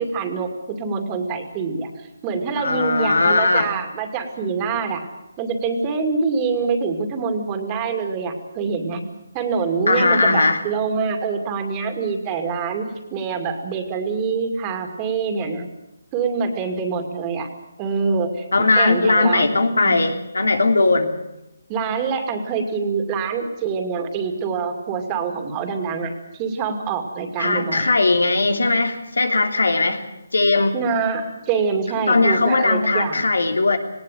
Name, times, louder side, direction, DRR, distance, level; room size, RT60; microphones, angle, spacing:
voice 1, 0.0-5.0 5.4-9.0 9.3-15.7 16.1-17.5 17.8-18.4 18.8-19.4 19.7-20.0 21.7-27.9 30.7-33.2, right 5 dB, 20° right, 5 dB, 2.5 m, -25 dB
voice 2, 2.6-3.7 9.9-10.6 18.5-21.1 27.4-30.0 30.3-30.8 32.1-33.8, left 3 dB, 90° left, 5 dB, 3.1 m, -18 dB
19.0 x 18.0 x 9.2 m, 0.94 s
hypercardioid pair, 160°, 0 cm